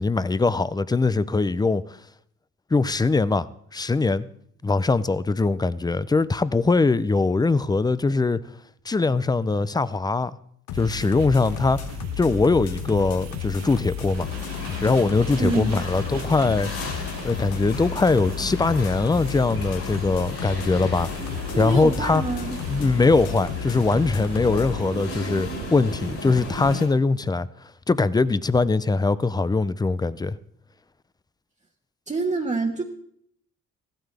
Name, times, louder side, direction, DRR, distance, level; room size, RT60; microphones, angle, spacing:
voice 1, 0.0-1.8 2.7-3.5 3.7-4.2 4.6-8.4 8.9-10.4 10.7-11.8 12.2-14.3 14.8-16.7 17.2-21.1 21.6-22.2 22.7-27.5 27.9-30.4, left 3 dB, 15° left, 0.5 m, -22 dB
sound 1, 10.7-24.8, left 13 dB, 80° left, 0.6 m, -33 dB
sound 2, 10.7-26.8, right 14 dB, 60° right, 0.5 m, -39 dB
sound 3, 14.1-26.9, left 3 dB, 60° left, 4.8 m, -35 dB
voice 2, 15.4-15.8 21.5-22.6 32.1-32.8, right 3 dB, 25° right, 1.3 m, -26 dB
15.0 x 13.0 x 3.4 m
cardioid pair, 90°, 30 cm